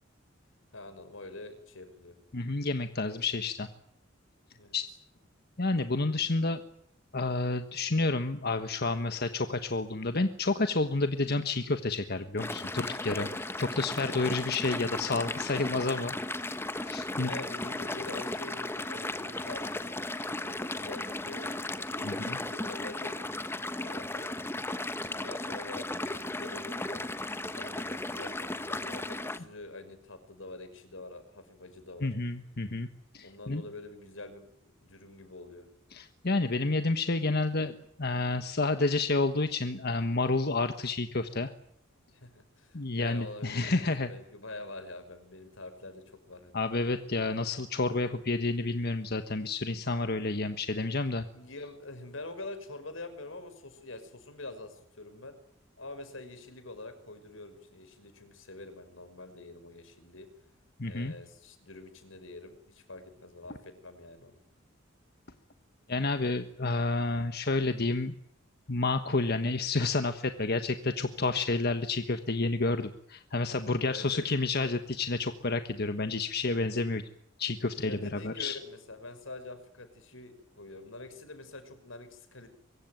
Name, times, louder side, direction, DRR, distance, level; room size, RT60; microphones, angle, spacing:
voice 1, 0.7-2.2 2.5-2.7 4.5-4.8 17.2-23.2 23.7-24.8 25.0-27.0 27.5-32.1 33.2-35.7 42.1-46.6 51.3-55.4 55.8-60.3 60.8-64.4 73.9-74.2 77.8-82.5, left 2 dB, 85° left, 10 dB, 5.5 m, -46 dB
voice 2, 2.3-3.7 4.7-4.9 5.6-6.6 7.1-16.1 16.4-16.5 16.8-17.3 22.0-22.4 32.0-32.9 33.1-33.6 35.9-41.5 42.7-44.1 46.5-51.3 60.8-61.1 65.9-68.1 68.7-77.0 77.4-78.6, left 3 dB, 55° left, 8 dB, 1.4 m, -30 dB
sound 1, 12.4-29.4, left 2 dB, 10° left, 1.2 m, -36 dB
23.5 x 23.5 x 9.3 m, 0.71 s
head